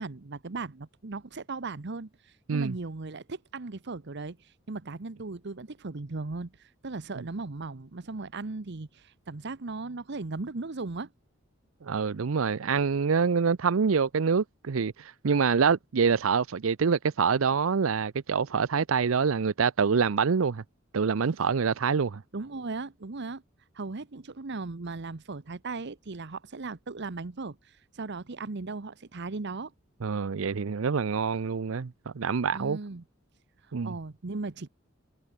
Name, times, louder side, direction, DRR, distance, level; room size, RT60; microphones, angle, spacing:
voice 1, 0.0-11.1 22.3-23.4 23.7-29.7 32.5-33.0 33.6-34.7, right 3 dB, 60° right, 0.9 m, -37 dB
voice 2, 11.8-20.6 20.9-22.2 30.0-31.9 32.2-32.8 33.7-33.9, right 5 dB, 85° right, 0.6 m, -26 dB
head